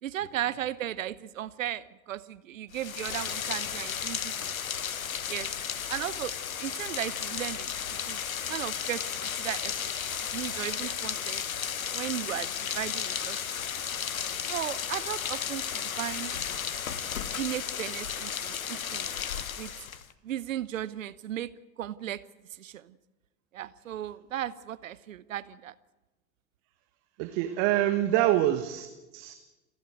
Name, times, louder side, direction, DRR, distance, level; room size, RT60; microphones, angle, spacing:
voice 1, 0.0-4.5 5.3-5.5 5.9-8.2 8.5-9.9 10.3-11.4 11.9-13.6 14.5-16.3 17.4-19.1 19.6-19.7 20.2-21.5 21.8-22.2 22.5-23.0 23.5-25.7 28.2-28.4, right 12 dB, 65° right, 17 dB, 1.0 m, -36 dB
Rain, 2.7-20.1, left 8 dB, 75° left, 1.2 m, -34 dB
voice 2, 27.2-29.4, right 14 dB, 45° right, 9 dB, 1.5 m, -26 dB
29.0 x 11.5 x 8.1 m, 1.1 s
figure-of-eight pair, 80°, 42 cm